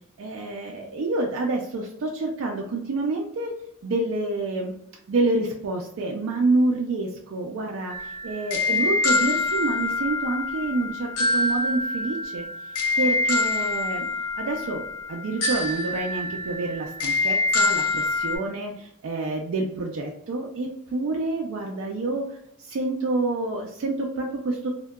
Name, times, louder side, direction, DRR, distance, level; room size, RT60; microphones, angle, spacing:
voice 1, 0.2-3.5 3.8-4.7 5.1-12.5 13.0-14.1 14.4-14.8 15.1-22.3 22.6-24.7, right 2 dB, 60° right, 0 dB, 0.3 m, -28 dB
sound 1, 7.9-18.4, left 3 dB, 80° left, 0.5 m, -26 dB
2.7 x 2.1 x 2.2 m, 0.77 s
head